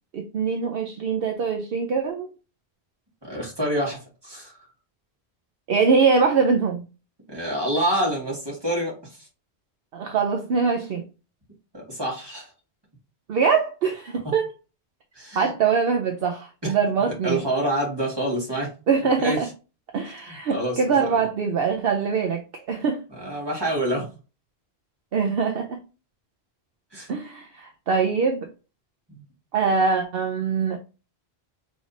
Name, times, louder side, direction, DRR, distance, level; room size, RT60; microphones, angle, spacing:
voice 1, 0.1-2.3 5.7-6.8 9.9-11.0 13.3-14.5 15.3-17.4 18.9-19.5 19.9-23.0 25.1-25.8 27.1-28.5 29.5-30.8, right 5 dB, 65° right, 0.8 m, -23 dB
voice 2, 3.2-4.5 7.3-9.0 11.7-12.5 14.2-14.3 15.1-15.5 16.6-16.7 17.2-18.7 19.2-19.4 20.3-21.2 23.1-24.1 26.9-27.1 29.1-29.2, right 1 dB, 20° right, 1.8 m, -27 dB
4.9 x 3.4 x 2.6 m
omnidirectional pair, 1.1 m